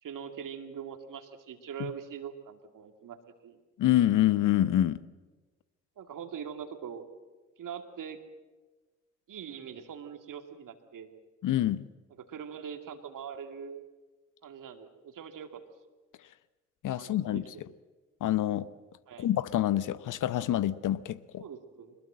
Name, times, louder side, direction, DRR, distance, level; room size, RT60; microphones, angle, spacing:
voice 1, 0.0-3.2 3.4-3.6 6.0-7.0 7.6-8.2 9.3-11.1 12.2-13.8 14.4-15.6 17.0-17.4 19.1-19.3 21.4-22.0, right 7 dB, 55° right, 7 dB, 2.5 m, -42 dB
voice 2, 3.8-5.0 11.4-11.9 16.8-17.4 18.2-18.7 19.2-21.4, left 13 dB, 50° left, 17 dB, 0.9 m, -26 dB
24.0 x 21.0 x 7.6 m, 1.2 s
figure-of-eight pair, 45°, 39 cm